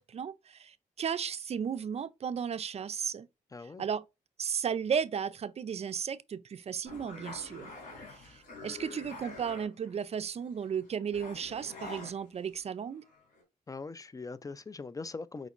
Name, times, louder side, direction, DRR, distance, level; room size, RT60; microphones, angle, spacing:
voice 1, 0.0-3.3 3.8-4.0 4.4-7.7 8.1-13.0, right 7 dB, 50° right, 0.4 m, -35 dB
voice 2, 3.5-3.8 13.7-15.5, left 4 dB, 25° left, 0.3 m, -41 dB
sound 1, 6.8-10.1 10.4-12.7 13.0-13.4, left 3 dB, 75° left, 3.1 m, -47 dB
5.0 x 4.0 x 2.4 m
cardioid pair, 80°, 14 cm